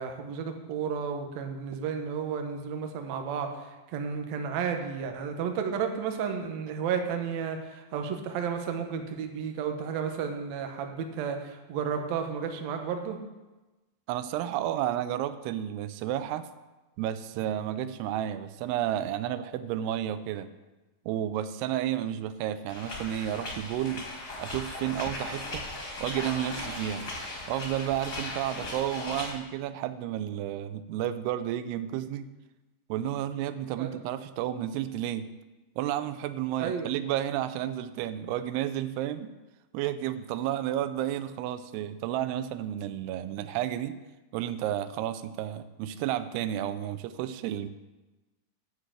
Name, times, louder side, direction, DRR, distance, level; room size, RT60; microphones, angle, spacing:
voice 1, 0.0-13.2 33.8-33.9 36.6-36.9, right 6 dB, 70° right, 5 dB, 1.7 m, -32 dB
voice 2, 14.1-16.5 17.0-20.5 21.1-24.1 24.4-25.7 26.0-27.1 27.5-32.3 32.9-35.3 35.8-39.3 39.7-44.0 44.3-47.7, right 11 dB, 90° right, 12 dB, 2.7 m, -31 dB
sound 1, 22.7-29.3, left 2 dB, 35° left, 1.7 m, -38 dB
9.4 x 6.6 x 7.7 m, 1.1 s
omnidirectional pair, 4.6 m